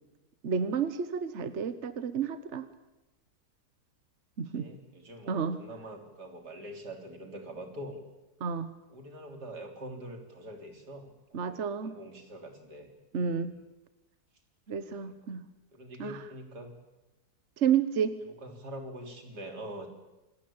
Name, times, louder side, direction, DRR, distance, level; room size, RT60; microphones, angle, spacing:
voice 1, 0.4-2.7 4.4-4.7 5.3-5.6 8.4-8.7 11.3-12.0 13.1-13.5 14.7-15.4 16.0-16.2 17.6-18.2, right 7 dB, 50° right, 12 dB, 1.4 m, -30 dB
voice 2, 4.5-8.0 8.9-13.5 14.9-15.2 15.7-16.7 18.3-19.9, right 1 dB, 90° right, 4 dB, 4.2 m, -44 dB
27.5 x 19.0 x 8.7 m, 1.0 s
omnidirectional pair, 1.7 m